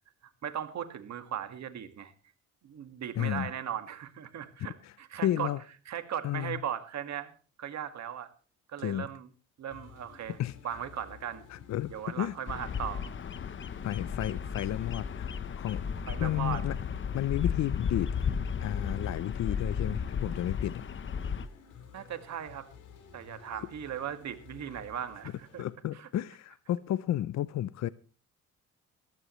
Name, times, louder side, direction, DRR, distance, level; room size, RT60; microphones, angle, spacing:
voice 1, 0.4-2.1 2.6-5.5 5.9-7.3 7.6-8.3 8.7-9.3 9.6-10.4 10.6-11.4 11.9-13.1 16.1-16.6 21.9-22.7 23.1-25.6 25.9-26.1, right 9 dB, 65° right, 9 dB, 1.9 m, -38 dB
voice 2, 3.2-3.5 4.8-4.9 5.2-5.6 6.2-6.6 8.8-9.1 10.4-10.6 11.5-12.4 13.8-15.8 16.2-16.7 17.1-18.1 18.6-20.8 23.6-23.7 25.6-27.9, left 12 dB, 65° left, 16 dB, 0.7 m, -32 dB
sound 1, 9.7-25.7, left 6 dB, 85° left, 4.9 m, -53 dB
Bird vocalization bird call bird song, 12.5-21.5, left 7 dB, 40° left, 1.0 m, -34 dB
21.5 x 15.0 x 3.2 m, 0.37 s
cardioid pair, 90°, 30 cm